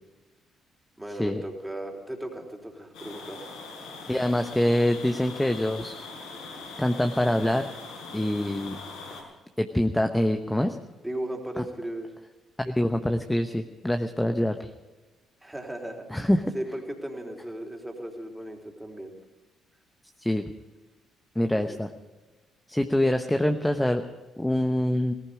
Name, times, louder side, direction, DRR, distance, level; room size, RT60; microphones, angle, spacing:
voice 1, 1.0-3.5 11.0-12.1 15.4-16.1 16.5-19.2 21.5-21.8, right 1 dB, 10° right, 1 dB, 3.7 m, -36 dB
sound 1, 2.9-9.2, left 3 dB, 75° left, 4.7 m, -41 dB
voice 2, 4.1-5.9 6.8-7.7 8.1-8.8 9.6-10.8 11.6-11.7 12.6-14.7 16.1-16.4 20.2-20.4 21.3-21.9 22.7-24.0 24.4-25.1, left 1 dB, 10° left, 6 dB, 1.0 m, -25 dB
18.0 x 14.5 x 5.1 m, 1.2 s
figure-of-eight pair, 45°, 0 cm